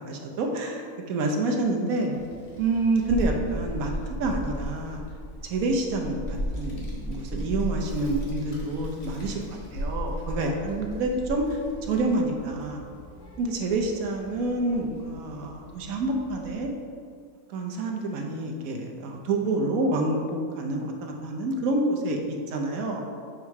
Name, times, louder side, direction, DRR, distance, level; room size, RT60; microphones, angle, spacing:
voice 1, 0.1-2.2 2.6-5.0 5.4-11.5 11.9-12.8 13.4-16.7 17.5-23.0, right 2 dB, 70° right, 2 dB, 1.3 m, -28 dB
Child speech kid speaking, 2.1-16.5, equal, 50° left, 1.6 m, -36 dB
6.5 x 5.0 x 4.8 m, 2.1 s
omnidirectional pair, 1.5 m